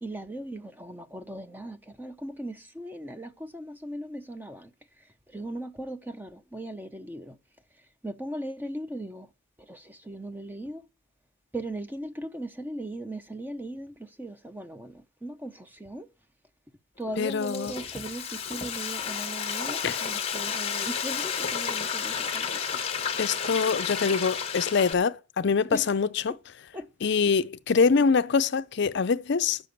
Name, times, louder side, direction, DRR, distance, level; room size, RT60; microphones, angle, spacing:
voice 1, 0.0-4.7 5.3-7.4 8.0-9.3 9.6-10.8 11.5-16.1 17.0-22.8 25.6-25.9 26.3-26.4 26.7-26.9, right 1 dB, 10° right, 0.5 m, -38 dB
Frying (food), 17.1-24.9, left 7 dB, 30° left, 1.1 m, -32 dB
voice 2, 17.2-17.7 19.8-20.0 23.2-26.3 27.0-29.6, left 5 dB, 55° left, 0.5 m, -24 dB
8.3 x 6.8 x 8.0 m
head